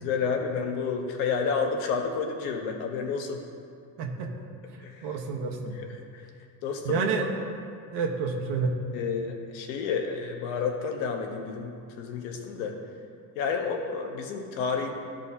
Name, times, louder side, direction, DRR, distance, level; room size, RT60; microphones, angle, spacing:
voice 1, 0.0-3.4 4.8-5.1 6.1-6.2 6.6-7.1 8.9-12.8 13.4-14.9, left 5 dB, 85° left, 3 dB, 1.1 m, -30 dB
voice 2, 4.0-4.3 5.0-5.7 6.8-7.3 7.9-8.7, right 5 dB, 70° right, 1 dB, 1.2 m, -28 dB
14.0 x 5.2 x 2.8 m, 2.4 s
supercardioid pair, 105°, 43 cm